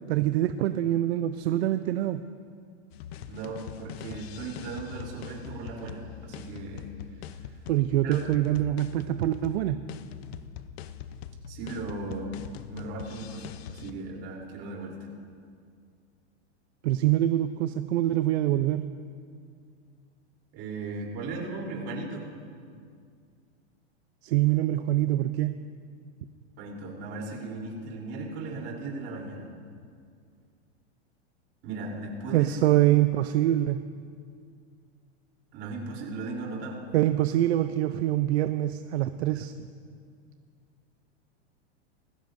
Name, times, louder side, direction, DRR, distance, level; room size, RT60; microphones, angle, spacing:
voice 1, 0.1-2.2 7.7-9.8 16.8-18.9 24.2-25.5 32.3-33.8 36.9-39.5, right 14 dB, 70° right, 10 dB, 0.6 m, -25 dB
sound 1, 2.9-13.9, left 9 dB, 65° left, 0.7 m, -42 dB
voice 2, 3.3-6.9 8.0-8.2 11.5-12.3 12.7-15.1 20.5-22.3 26.6-29.5 31.6-32.5 35.5-36.8, right 3 dB, 40° right, -1 dB, 3.4 m, -37 dB
20.0 x 16.0 x 2.6 m, 2.2 s
supercardioid pair, 145°, 34 cm